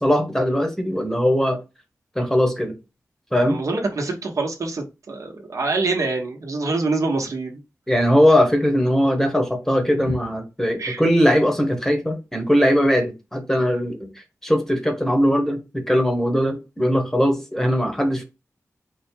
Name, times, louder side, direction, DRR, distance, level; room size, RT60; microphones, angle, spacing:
voice 1, 0.0-1.6 2.2-2.7 3.3-3.6 7.9-14.1 14.4-18.2, equal, 5° left, 1.0 m, -20 dB
voice 2, 3.4-7.6 10.8-11.0, right 3 dB, 65° right, 1.1 m, -25 dB
4.3 x 2.2 x 4.4 m
wide cardioid pair, 95°, 6 cm